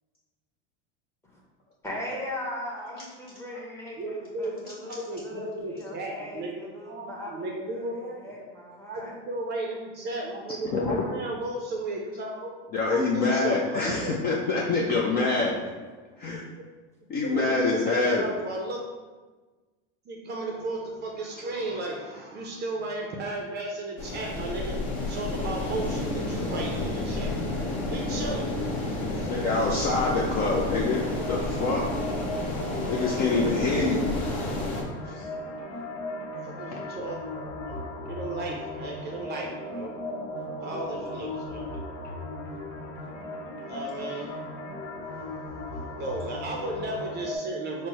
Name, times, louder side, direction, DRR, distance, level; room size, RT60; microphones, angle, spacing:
voice 1, 1.8-9.2, left 1 dB, 5° left, -4 dB, 0.8 m, -39 dB
voice 2, 4.0-8.2 8.8-12.6 12.9-14.1 16.3-16.4 17.3-18.8 20.1-24.8 25.1-27.5 27.9-28.5 29.2-29.3 33.3-33.4 36.4-39.9 40.6-41.7 43.7-44.3 45.3-47.9, right 2 dB, 30° right, 0 dB, 0.5 m, -35 dB
voice 3, 4.7-5.1 10.6-11.0 12.7-15.6 16.2-16.4 17.1-18.3 29.2-31.9 32.9-34.1 34.3-34.4 35.0-35.3 36.7-36.8, left 3 dB, 30° left, -3 dB, 0.4 m, -26 dB
sound 1, 24.0-34.8, left 2 dB, 45° left, 1.0 m, -31 dB
sound 2, 30.4-47.4, left 1 dB, 90° left, 0.9 m, -37 dB
4.3 x 2.1 x 4.5 m, 1.3 s
supercardioid pair, 135°, 36 cm